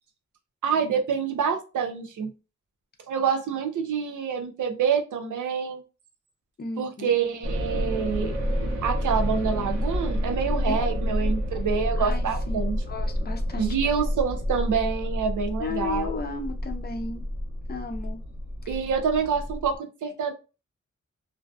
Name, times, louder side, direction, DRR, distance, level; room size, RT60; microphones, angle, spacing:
voice 1, 0.6-2.3 3.1-5.8 6.8-8.4 8.8-12.8 13.6-16.1 18.7-20.3, right 6 dB, 90° right, 0.5 m, -27 dB
voice 2, 6.6-7.1 10.7-10.8 11.1-11.3 12.0-13.8 15.6-17.2 17.7-18.2 18.6-18.8, left 4 dB, 35° left, 0.5 m, -35 dB
sound 1, 7.4-19.8, equal, 70° right, 0.9 m, -29 dB
2.5 x 2.3 x 2.2 m
wide cardioid pair, 90°, 30 cm